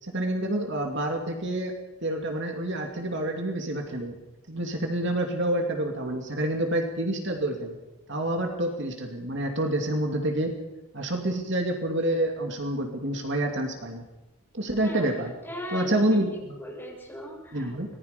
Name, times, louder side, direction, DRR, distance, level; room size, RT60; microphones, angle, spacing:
voice 1, 0.0-1.7 2.0-4.2 4.5-7.8 8.1-10.5 10.9-14.1 14.5-15.3 15.7-16.6 17.5-17.9, right 1 dB, 50° right, 3 dB, 2.7 m, -28 dB
voice 2, 14.8-15.1 15.4-16.2 16.6-17.9, left 1 dB, 10° left, -2 dB, 7.0 m, -38 dB
25.5 x 20.0 x 5.3 m, 1.0 s
head